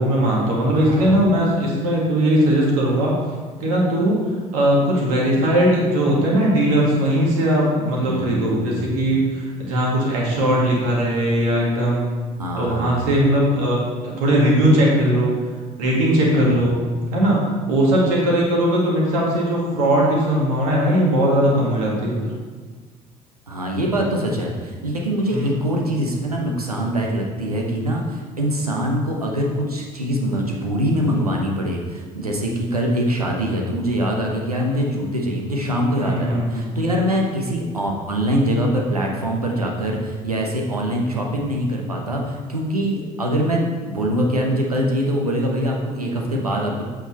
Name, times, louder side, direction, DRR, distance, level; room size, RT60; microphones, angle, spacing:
voice 1, 0.0-3.1 3.6-4.2 4.5-12.1 12.5-15.3 15.8-16.8 17.1-17.4 17.7-22.2 25.3-25.5 36.0-36.7, right 1 dB, 70° right, -3 dB, 2.1 m, -19 dB
voice 2, 0.7-1.2 8.0-9.2 12.4-13.1 16.2-16.7 23.5-46.8, equal, 90° right, 0 dB, 0.9 m, -23 dB
8.1 x 6.4 x 4.2 m, 1.4 s
figure-of-eight pair, 55°, 19 cm